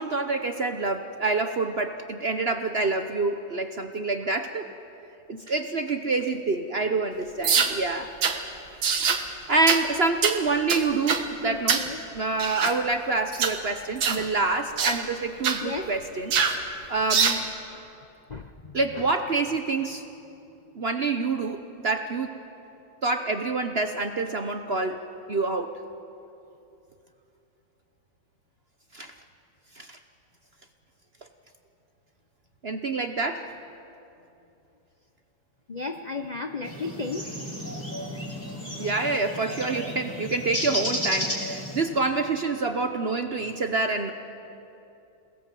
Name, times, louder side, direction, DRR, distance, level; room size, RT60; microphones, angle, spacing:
voice 1, 0.0-4.7 5.3-8.1 9.0-9.1 9.5-11.9 12.1-16.3 16.9-17.4 18.7-20.0 20.8-22.4 23.0-25.0 25.3-25.7 28.9-29.1 29.8-30.0 32.6-33.5 38.8-44.1, right 3 dB, 45° right, 7 dB, 0.8 m, -27 dB
sound 1, 7.4-7.7 8.2-8.4 8.8-9.2 9.7-9.8 10.2-10.4 10.7-11.2 11.7-11.9 12.4-12.8 13.3-13.6 14.0-14.2 14.8-15.0 15.4-15.6 16.3-16.6 17.1-17.4, right 6 dB, 90° right, 2.2 m, -24 dB
voice 2, 11.4-12.0 15.6-15.9 17.7-17.8 18.3-19.1 35.7-37.2, left 3 dB, 50° left, 6 dB, 0.5 m, -34 dB
sound 2, 36.6-41.8, equal, 5° left, 4.8 m, -33 dB
27.5 x 19.5 x 7.6 m, 2.8 s
omnidirectional pair, 2.0 m